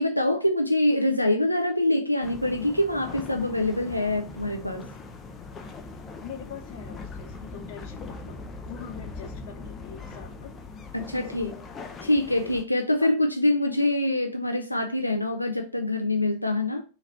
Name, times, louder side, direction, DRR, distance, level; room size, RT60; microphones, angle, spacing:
voice 1, 0.0-4.9 10.9-11.5 12.0-16.8, left 1 dB, 90° left, 0.3 m, -25 dB
sound 1, 2.2-12.6, left 3 dB, 25° left, 0.6 m, -41 dB
voice 2, 6.2-8.4 8.7-10.5 11.0-12.6 13.0-13.1, left 7 dB, 50° left, 0.9 m, -43 dB
4.0 x 2.9 x 4.1 m
figure-of-eight pair, 90°, 0 cm